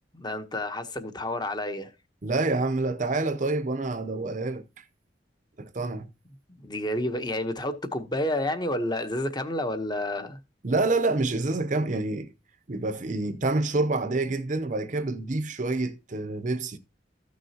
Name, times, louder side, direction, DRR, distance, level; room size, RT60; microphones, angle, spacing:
voice 1, 0.1-1.9 6.6-10.4, left 1 dB, 25° left, 1.0 m, -30 dB
voice 2, 2.2-4.8 5.6-6.1 10.6-12.3 12.7-16.8, right 2 dB, 40° right, 0.7 m, -27 dB
14.5 x 6.2 x 2.9 m
head